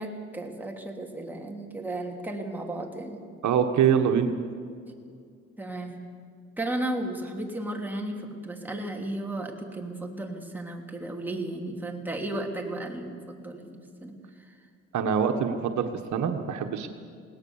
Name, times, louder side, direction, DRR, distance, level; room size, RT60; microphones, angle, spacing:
voice 1, 0.0-3.2 5.6-6.0 6.6-14.7, right 1 dB, 5° right, 1 dB, 3.0 m, -34 dB
voice 2, 3.4-4.3 14.9-16.9, right 7 dB, 70° right, 5 dB, 1.5 m, -24 dB
21.0 x 18.0 x 7.2 m, 2.2 s
cardioid pair, 90°, 30 cm